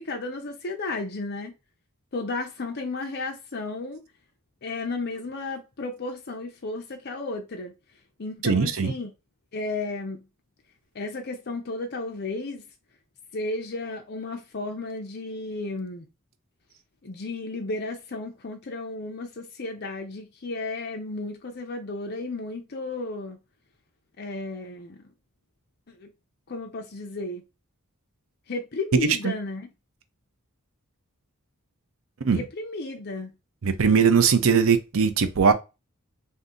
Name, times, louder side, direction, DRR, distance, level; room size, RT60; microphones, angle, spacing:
voice 1, 0.0-1.5 2.1-4.0 4.6-7.7 8.2-9.1 9.5-10.2 10.9-12.6 13.3-16.0 17.0-23.4 24.2-25.1 25.9-26.1 26.5-27.4 28.5-29.7 32.3-33.3, left 2 dB, 45° left, 0.6 m, -33 dB
voice 2, 8.4-8.9 29.0-29.3 32.2-32.4 33.6-35.5, right 6 dB, 65° right, 0.6 m, -20 dB
2.7 x 2.6 x 3.7 m
head